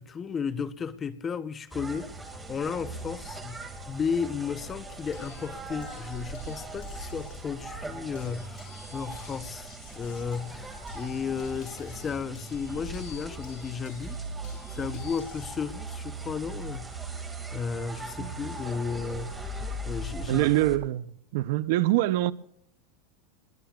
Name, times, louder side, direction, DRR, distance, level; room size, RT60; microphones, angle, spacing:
voice 1, 0.0-3.6 3.9-14.2 14.7-16.9 17.5-19.6 19.8-20.5, left 6 dB, 20° left, 0.7 m, -34 dB
sound 1, 1.7-20.8, right 2 dB, 10° right, 2.1 m, -39 dB
sound 2, 5.1-7.5 8.1-15.7 16.8-17.2, left 9 dB, 60° left, 4.3 m, -54 dB
voice 2, 20.3-22.3, right 16 dB, 65° right, 0.5 m, -25 dB
28.0 x 21.5 x 2.4 m
supercardioid pair, 135°, 0 cm